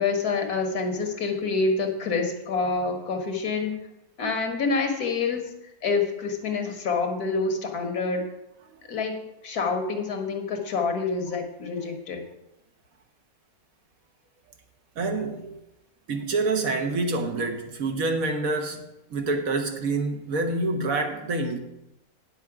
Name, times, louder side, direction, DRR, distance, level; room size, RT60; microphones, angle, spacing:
voice 1, 0.0-3.8 4.2-5.5 5.8-8.3 8.9-12.3, left 4 dB, 85° left, 1.9 m, -27 dB
voice 2, 15.0-15.6 16.1-21.6, right 3 dB, 70° right, 1.5 m, -27 dB
9.5 x 7.3 x 4.8 m
omnidirectional pair, 1.6 m